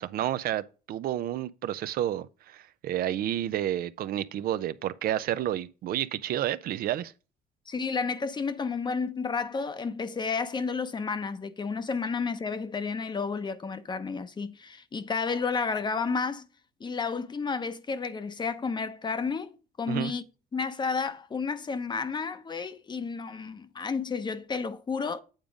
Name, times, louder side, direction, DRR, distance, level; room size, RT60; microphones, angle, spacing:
voice 1, 0.0-7.1 19.9-20.1, right 12 dB, 60° right, 0.5 m, -30 dB
voice 2, 7.7-16.4 16.8-20.2 20.5-25.2, left 5 dB, 25° left, 0.7 m, -31 dB
8.8 x 3.7 x 5.0 m
cardioid pair, 110°, 17 cm